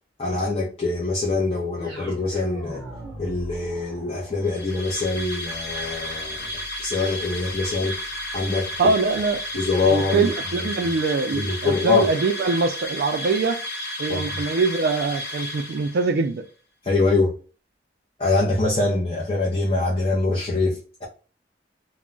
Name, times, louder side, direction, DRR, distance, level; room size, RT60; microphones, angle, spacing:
voice 1, 0.2-2.8 3.2-6.5 6.8-8.0 8.3-8.9 9.5-10.3 10.6-10.7 11.3-12.0 14.1-14.4 16.8-17.3 18.2-21.0, left 3 dB, 30° left, 0.5 m, -24 dB
sound 1, 1.7-9.9, right 1 dB, 5° right, 0.7 m, -42 dB
sound 2, 4.4-16.2, left 1 dB, 65° left, 0.7 m, -33 dB
voice 2, 8.8-9.4 9.8-13.6 14.0-16.4, right 4 dB, 55° right, 0.3 m, -23 dB
2.2 x 2.0 x 3.7 m
head